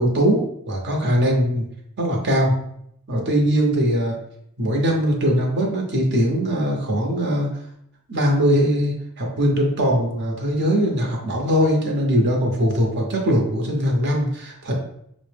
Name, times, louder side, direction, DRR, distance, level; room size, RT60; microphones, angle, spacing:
voice 1, 0.0-1.7 2.0-2.5 3.1-4.2 4.6-7.5 8.1-14.7, equal, 55° right, 1 dB, 0.8 m, -21 dB
5.3 x 2.1 x 3.3 m, 0.73 s
head